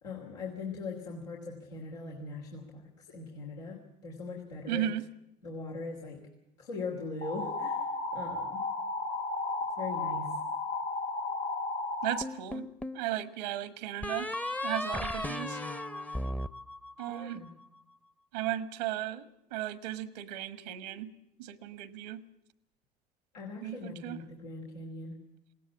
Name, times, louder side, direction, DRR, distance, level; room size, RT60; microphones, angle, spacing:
voice 1, 0.0-4.9 5.4-6.3 6.6-8.6 9.8-10.4 17.1-17.5 23.3-25.3, left 3 dB, 90° left, -3 dB, 2.9 m, -41 dB
voice 2, 4.7-5.0 12.0-12.7 12.9-14.3 14.6-15.6 17.0-17.4 18.3-21.1 21.4-22.2 23.6-24.2, right 12 dB, 80° right, 15 dB, 1.3 m, -35 dB
sound 1, 7.2-12.2, left 3 dB, 45° left, 1.4 m, -34 dB
sound 2, 12.2-13.1 14.0-17.4, left 1 dB, 5° left, 0.8 m, -36 dB
20.5 x 17.5 x 8.4 m, 0.85 s
hypercardioid pair, 70°, 20 cm